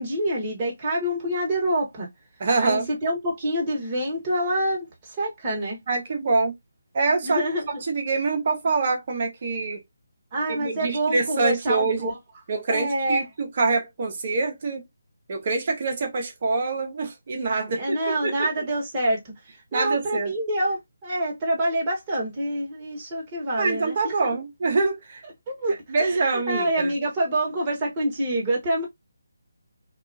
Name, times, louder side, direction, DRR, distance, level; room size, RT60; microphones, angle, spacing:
voice 1, 0.0-2.1 2.6-5.8 7.2-7.8 10.3-12.2 12.7-13.3 17.7-19.2 19.7-24.3 25.5-28.8, right 1 dB, 25° right, 1.2 m, -26 dB
voice 2, 2.4-2.9 5.9-6.5 6.9-7.4 7.9-9.8 10.6-12.1 12.5-14.8 15.3-18.6 19.7-20.3 23.6-25.2 25.9-26.9, right 3 dB, 45° right, 0.8 m, -25 dB
2.7 x 2.4 x 2.5 m
figure-of-eight pair, 155°, 0 cm